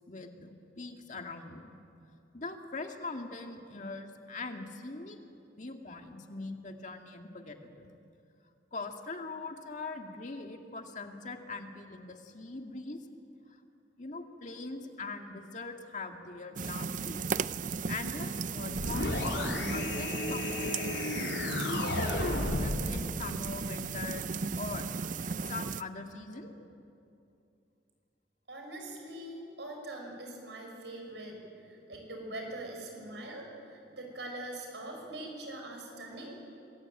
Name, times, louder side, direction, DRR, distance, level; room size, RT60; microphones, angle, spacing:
voice 1, 0.1-1.8 2.3-5.2 5.6-7.9 8.7-13.0 13.5-13.6 14.0-17.2 17.8-20.9 21.6-24.3 24.5-24.9 25.5-26.5, left 3 dB, 40° left, 4 dB, 2.1 m, -41 dB
sound 1, 16.6-25.8, right 5 dB, 45° right, 0.5 m, -36 dB
sound 2, 18.7-22.9, left 2 dB, 90° left, 3.5 m, -33 dB
voice 2, 28.5-36.4, right 1 dB, 75° right, 1 dB, 5.9 m, -43 dB
26.5 x 21.0 x 8.9 m, 2.6 s
head